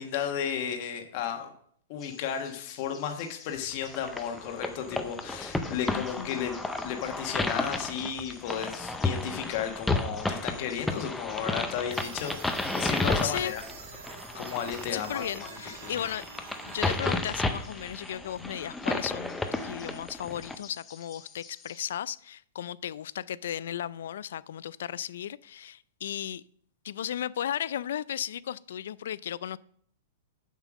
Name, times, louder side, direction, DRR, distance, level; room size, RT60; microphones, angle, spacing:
voice 1, 0.0-1.5 1.9-6.6 6.8-13.6 14.3-15.6, left 8 dB, 45° left, 1.2 m, -34 dB
sound 1, 2.0-21.9, left 7 dB, 25° left, 1.0 m, -53 dB
sound 2, 3.8-20.6, left 2 dB, 5° left, 0.6 m, -33 dB
voice 2, 5.9-6.4 13.2-13.6 14.9-16.3 16.6-26.4 26.8-29.6, left 10 dB, 70° left, 0.3 m, -35 dB
sound 3, 11.9-17.0, right 7 dB, 75° right, 1.4 m, -46 dB
7.2 x 5.6 x 6.1 m
hypercardioid pair, 160°, 0 cm